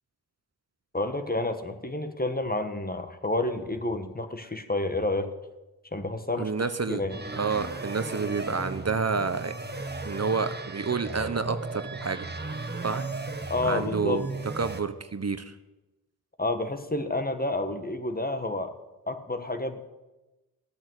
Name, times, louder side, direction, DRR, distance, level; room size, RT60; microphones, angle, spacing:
voice 1, 0.9-5.3 5.9-6.5 6.9-7.2 13.5-14.2 16.4-18.7 19.1-19.8, left 2 dB, 25° left, 8 dB, 1.8 m, -29 dB
voice 2, 6.4-7.0 7.3-9.5 10.0-12.3 12.8-13.1 13.7-14.3 14.5-15.5, right 5 dB, 40° right, 11 dB, 1.0 m, -29 dB
sound 1, 7.1-14.8, right 3 dB, 25° right, 1.6 m, -36 dB
14.5 x 8.8 x 8.3 m, 1.1 s
cardioid pair, 40°, 38 cm